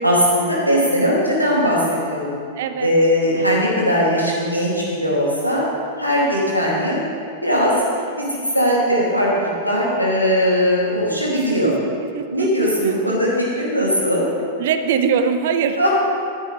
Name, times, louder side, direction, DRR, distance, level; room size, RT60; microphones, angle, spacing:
voice 1, 0.0-2.3 2.8-5.6 6.0-7.0 7.4-8.3 8.5-11.7 12.3-14.3 15.8-15.9, equal, 90° right, -5 dB, 2.9 m, -19 dB
voice 2, 2.6-2.9 11.4-13.2 14.6-15.9, right 6 dB, 55° right, 9 dB, 0.7 m, -23 dB
13.5 x 10.0 x 3.4 m, 2.4 s
figure-of-eight pair, 95°, 0 cm